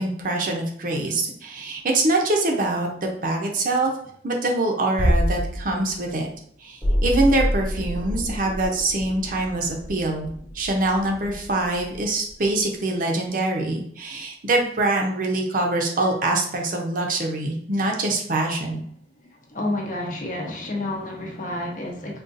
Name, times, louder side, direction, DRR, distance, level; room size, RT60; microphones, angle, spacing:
voice 1, 0.0-3.9 4.2-6.3 6.6-18.8, right 2 dB, 45° right, 1 dB, 0.6 m, -24 dB
Bass drum, 5.0-6.4, equal, 90° left, 1.1 m, -23 dB
sound 1, 6.8-12.8 13.1-13.2, equal, 10° left, 0.8 m, -29 dB
voice 2, 19.5-22.2, left 1 dB, 45° left, 0 dB, 0.7 m, -29 dB
3.7 x 2.3 x 2.5 m, 0.63 s
head